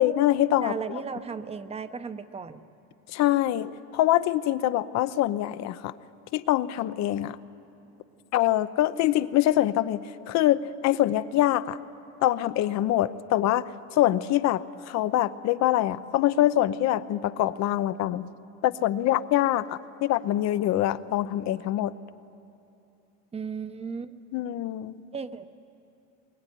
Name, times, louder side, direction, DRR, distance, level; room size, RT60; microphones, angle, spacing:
voice 1, 0.0-0.7 3.1-5.9 6.3-7.4 8.3-11.8 12.2-13.7 14.0-18.3 18.6-21.9 24.3-25.0, left 13 dB, 50° left, 13 dB, 0.8 m, -24 dB
voice 2, 0.6-2.6 23.3-24.1 25.1-25.5, right 5 dB, 20° right, 11 dB, 0.9 m, -35 dB
22.0 x 21.0 x 10.0 m, 2.8 s
cardioid pair, 130°, 34 cm